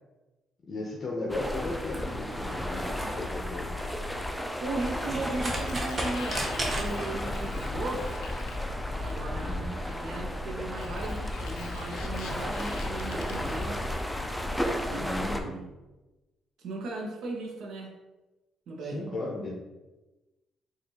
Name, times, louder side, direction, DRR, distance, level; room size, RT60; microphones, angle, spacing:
voice 1, 0.7-3.7 9.3-9.7 14.9-15.5 18.8-19.5, left 2 dB, 40° left, -4 dB, 0.6 m, -35 dB
sound 1, 1.3-15.4, left 1 dB, 5° left, 0.4 m, -33 dB
sound 2, 1.7-7.4, right 1 dB, 25° right, 0.7 m, -37 dB
voice 2, 4.6-8.1 8.9-13.9 14.8-15.6 16.6-17.9 18.7-19.1, right 2 dB, 75° right, 0 dB, 0.7 m, -37 dB
Sliding door, 4.9-9.5 10.6-14.3, left 5 dB, 85° left, 0.4 m, -46 dB
4.3 x 2.4 x 2.8 m, 1.1 s
cardioid pair, 110°, 0 cm